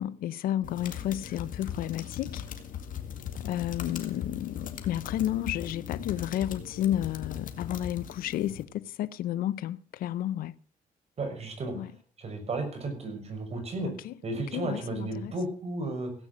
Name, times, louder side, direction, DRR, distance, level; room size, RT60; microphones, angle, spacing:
voice 1, 0.0-2.4 3.4-10.5 11.7-11.9 13.8-15.3, left 12 dB, 90° left, 0.6 m, -32 dB
sound 1, 0.6-8.6, left 8 dB, 65° left, 2.2 m, -39 dB
voice 2, 11.2-11.7 12.2-13.9 14.2-16.1, right 2 dB, 45° right, 6.0 m, -33 dB
17.0 x 8.9 x 6.0 m
cardioid pair, 100°, 15 cm